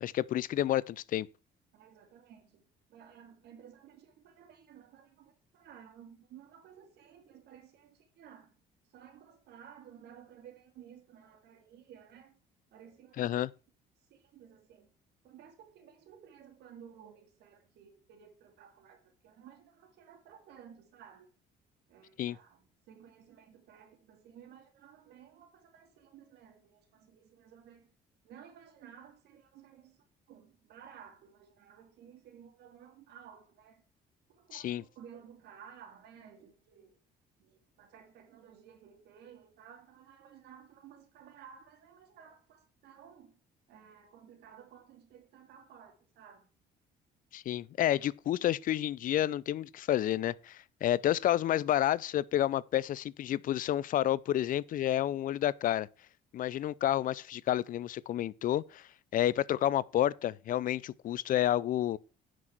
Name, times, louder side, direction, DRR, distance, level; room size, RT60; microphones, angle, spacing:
voice 1, 0.0-1.3 13.2-13.5 22.2-22.4 34.5-34.8 47.3-55.9 56.3-62.0, left 12 dB, 55° left, 0.5 m, -30 dB
voice 2, 1.7-8.5 8.9-12.4 12.7-13.4 14.0-14.9 15.2-21.3 21.9-27.9 28.2-33.9 34.3-37.0 37.4-43.4 43.7-46.5, right 8 dB, 80° right, 2.6 m, -55 dB
9.4 x 6.1 x 5.9 m
cardioid pair, 110°, 17 cm